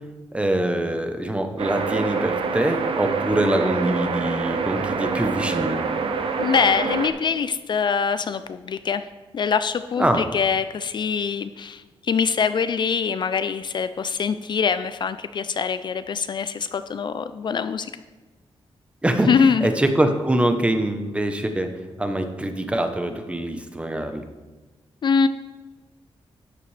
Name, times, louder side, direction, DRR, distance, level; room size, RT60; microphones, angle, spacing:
voice 1, 0.3-5.8 10.0-10.3 19.0-21.7 22.0-24.2, right 1 dB, 10° right, 6 dB, 0.8 m, -24 dB
sound 1, 1.6-7.1, right 5 dB, 60° right, 0.9 m, -26 dB
voice 2, 6.4-9.0 9.3-17.9 19.3-19.7 25.0-25.3, left 6 dB, 50° left, 11 dB, 0.4 m, -23 dB
13.0 x 9.7 x 3.3 m, 1.2 s
wide cardioid pair, 160°, 10 cm